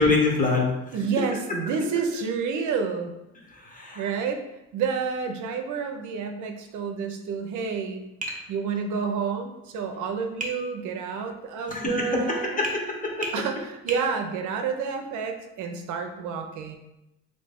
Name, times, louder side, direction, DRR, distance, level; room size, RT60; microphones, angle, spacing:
voice 1, 0.0-1.0 3.5-4.1 11.7-12.7 13.0-13.3, left 3 dB, 25° left, -1 dB, 1.0 m, -25 dB
voice 2, 0.9-3.1 4.0-4.4 4.7-8.0 8.5-12.6 13.3-16.8, right 5 dB, 75° right, 5 dB, 0.5 m, -29 dB
Tap, 8.2-8.5 10.4-10.6 12.6-12.8 13.2-13.4 13.9-14.1, right 1 dB, 25° right, 0.7 m, -32 dB
3.1 x 2.7 x 3.4 m, 0.93 s
cardioid pair, 90°, 30 cm